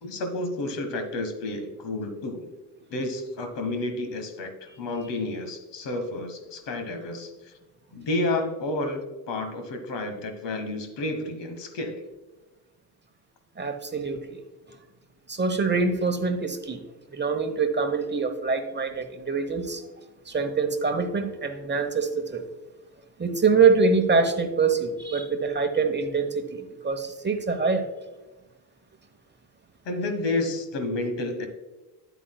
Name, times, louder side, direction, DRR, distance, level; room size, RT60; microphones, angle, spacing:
voice 1, 0.0-2.5 2.9-7.5 7.9-12.0 29.8-31.5, left 2 dB, 60° left, 6 dB, 1.5 m, -30 dB
voice 2, 13.6-14.4 15.3-16.8 17.1-19.9 20.3-22.4 23.2-27.9, right 4 dB, 20° right, 6 dB, 1.0 m, -24 dB
9.1 x 8.5 x 2.3 m, 1.2 s
hypercardioid pair, 50°, 49 cm